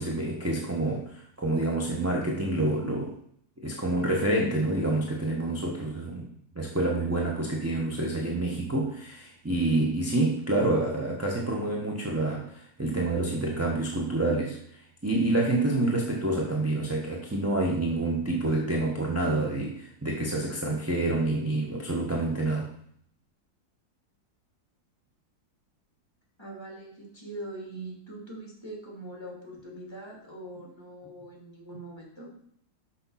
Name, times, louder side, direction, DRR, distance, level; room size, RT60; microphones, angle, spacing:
voice 1, 0.0-3.2 3.6-6.3 6.5-22.7, right 2 dB, 15° right, -2 dB, 0.6 m, -28 dB
voice 2, 26.4-32.3, right 1 dB, 15° left, -2 dB, 2.4 m, -42 dB
6.2 x 6.2 x 5.7 m, 0.67 s
omnidirectional pair, 2.0 m